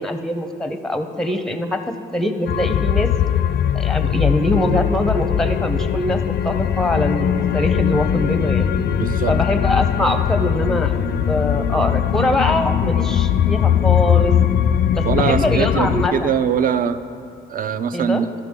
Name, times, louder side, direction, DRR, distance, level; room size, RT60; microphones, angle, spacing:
voice 1, 0.0-3.1 3.7-8.7 9.3-14.3 14.9-16.3 17.9-18.2, left 1 dB, ahead, 7 dB, 0.6 m, -23 dB
sound 1, 2.5-16.1, left 9 dB, 55° left, 0.4 m, -20 dB
voice 2, 8.9-9.4 15.0-17.0 17.5-18.3, right 7 dB, 45° right, 11 dB, 0.5 m, -22 dB
13.5 x 5.8 x 3.6 m, 2.7 s
cardioid pair, 90°, 20 cm